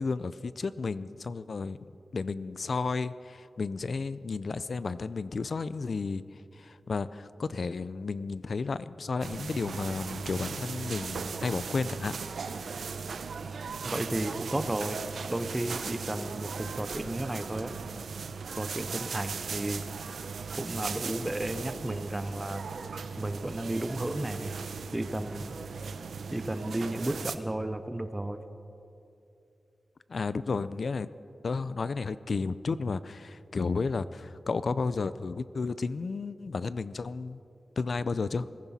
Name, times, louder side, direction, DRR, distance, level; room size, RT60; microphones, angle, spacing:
voice 1, 0.0-1.8 2.1-6.2 6.6-12.2 30.1-31.1 31.4-37.4 37.8-38.5, left 4 dB, 55° left, 15 dB, 0.4 m, -32 dB
sound 1, 9.2-27.4, right 5 dB, 90° right, 0.7 m, -38 dB
voice 2, 13.8-17.7 18.6-19.9 20.6-22.7 23.2-24.6 24.9-25.5 26.3-28.4, right 1 dB, 15° right, 10 dB, 0.6 m, -33 dB
21.0 x 14.5 x 4.2 m, 2.8 s
wide cardioid pair, 120°, 0 cm